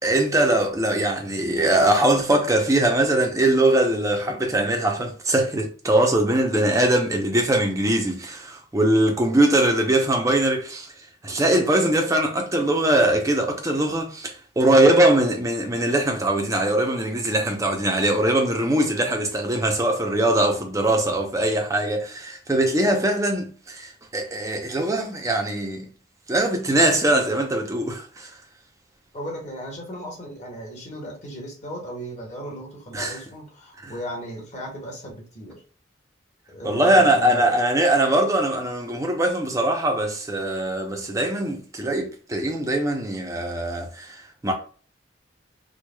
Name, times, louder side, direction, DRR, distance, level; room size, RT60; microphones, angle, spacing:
voice 1, 0.0-10.9 11.2-25.9 26.3-28.3 32.9-33.2 33.8-33.9 36.6-44.5, right 1 dB, 15° right, 0.6 m, -21 dB
voice 2, 29.1-35.6 36.5-37.6, equal, 35° left, 1.3 m, -36 dB
4.7 x 2.3 x 2.3 m
head